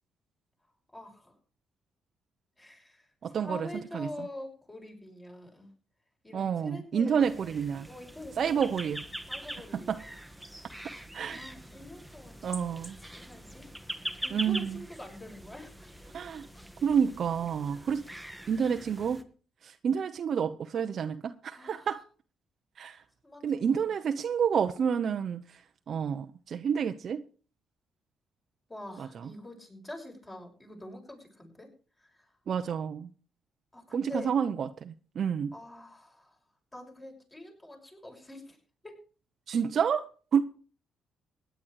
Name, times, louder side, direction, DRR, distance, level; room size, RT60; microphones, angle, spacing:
voice 1, 0.9-1.4 2.6-5.7 6.2-7.5 7.8-9.0 9.3-10.1 11.2-13.7 14.2-15.9 21.5-21.9 23.2-23.4 23.7-23.9 28.7-31.7 32.0-32.3 33.7-34.3 35.5-36.4 36.7-38.6 38.8-38.9, left 1 dB, 20° left, 6.4 m, -45 dB
voice 2, 3.2-3.7 3.9-4.1 6.3-7.9 8.4-9.0 9.9-10.0 11.1-11.4 12.4-13.0 14.3-14.8 16.1-16.5 16.8-18.0 18.5-19.2 19.6-22.0 22.8-23.0 23.4-25.6 25.9-27.2 29.0-29.3 32.5-33.1 33.9-35.5 39.5-40.4, right 7 dB, 55° right, 0.9 m, -29 dB
sound 1, 7.2-19.2, right 1 dB, ahead, 1.6 m, -43 dB
16.5 x 10.5 x 4.8 m
cardioid pair, 90°, 0 cm